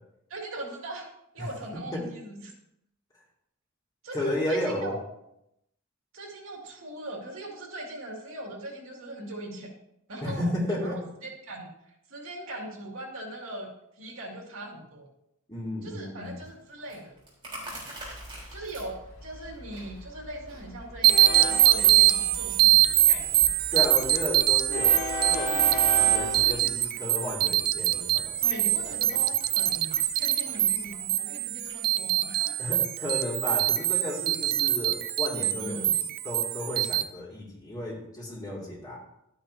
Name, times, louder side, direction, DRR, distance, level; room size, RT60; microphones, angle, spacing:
voice 1, 0.3-1.1 1.3-2.5 4.0-5.0 6.1-9.7 10.1-15.1 15.8-17.2 18.5-23.5 28.4-32.8 35.6-36.0, right 1 dB, 80° right, 0 dB, 2.3 m, -40 dB
voice 2, 4.1-4.9 10.2-11.0 15.5-16.4 23.7-25.0 25.2-29.0 32.6-39.0, left 1 dB, 20° left, -3 dB, 2.4 m, -33 dB
Chewing mastication, 16.2-31.8, right 1 dB, 25° right, 3.7 m, -49 dB
Train, 18.0-26.6, left 2 dB, 80° left, 2.2 m, -37 dB
sound 1, 21.0-37.0, right 13 dB, 50° right, 0.4 m, -24 dB
12.0 x 9.5 x 2.7 m, 0.81 s
head